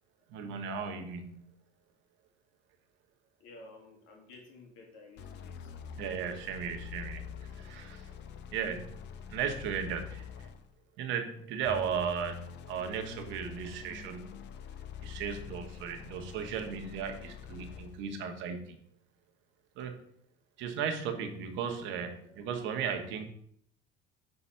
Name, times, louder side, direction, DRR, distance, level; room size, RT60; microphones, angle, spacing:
voice 1, 0.3-1.5 6.0-8.1 8.5-9.0 9.3-10.5 11.0-14.3 15.0-18.8 19.8-20.0 20.6-23.3, right 7 dB, 70° right, 5 dB, 1.2 m, -36 dB
voice 2, 3.4-5.8 22.2-22.4, left 2 dB, 80° left, 1 dB, 2.1 m, -53 dB
sound 1, 5.2-10.8 11.6-18.0, left 7 dB, 60° left, 0.7 m, -45 dB
5.7 x 4.0 x 5.5 m, 0.66 s
cardioid pair, 115°, 20 cm